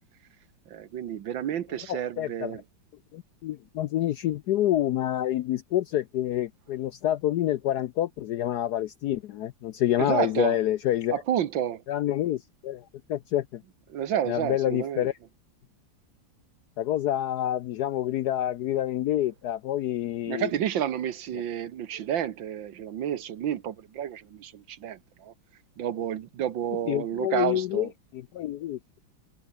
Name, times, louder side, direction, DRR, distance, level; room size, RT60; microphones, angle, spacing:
voice 1, 0.7-2.6 10.0-10.6 11.1-11.8 13.9-15.3 20.3-25.3 25.8-27.9, right 10 dB, 70° right, 1.8 m, -30 dB
voice 2, 1.9-2.5 3.1-11.2 11.9-13.6 14.3-15.1 16.8-20.5 26.9-28.8, left 12 dB, 70° left, 0.9 m, -28 dB
open air
omnidirectional pair, 2.2 m